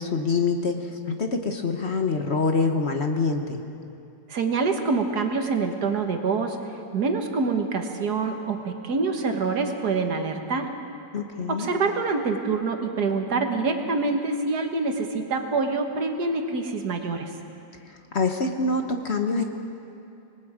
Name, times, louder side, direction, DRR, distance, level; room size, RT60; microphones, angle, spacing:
voice 1, 0.0-3.6 11.1-11.7 17.9-19.4, left 4 dB, 45° left, 4 dB, 1.3 m, -25 dB
voice 2, 4.3-10.7 11.5-17.3, right 4 dB, 70° right, 4 dB, 2.0 m, -26 dB
26.0 x 20.0 x 5.0 m, 2.7 s
omnidirectional pair, 1.8 m